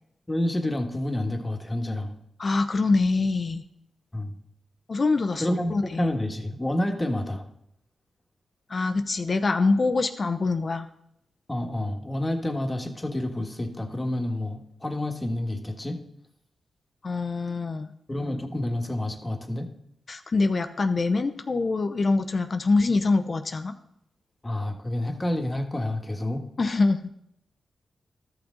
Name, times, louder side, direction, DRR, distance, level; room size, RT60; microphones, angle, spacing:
voice 1, 0.3-2.2 4.1-4.3 5.4-7.5 11.5-16.0 18.1-19.7 24.4-26.4, left 1 dB, 20° left, 3 dB, 1.5 m, -29 dB
voice 2, 2.4-3.6 4.9-6.1 8.7-10.9 17.0-17.9 20.1-23.8 26.6-27.1, left 3 dB, 45° left, 8 dB, 0.7 m, -24 dB
13.0 x 6.1 x 3.8 m, 0.75 s
cardioid pair, 60°, 0 cm